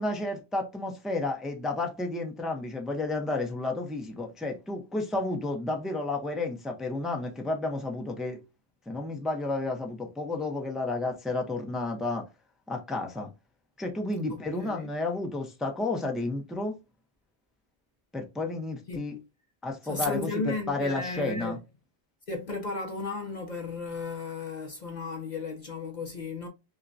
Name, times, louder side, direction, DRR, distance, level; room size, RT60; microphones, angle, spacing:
voice 1, 0.0-8.4 8.9-12.2 12.7-13.3 13.8-16.8 18.1-19.2 19.6-21.6, left 2 dB, ahead, 0.6 m, -31 dB
voice 2, 14.3-14.9 18.9-19.0 19.8-21.6 22.3-26.5, left 3 dB, 50° left, 0.7 m, -35 dB
5.6 x 2.2 x 2.6 m
omnidirectional pair, 1.1 m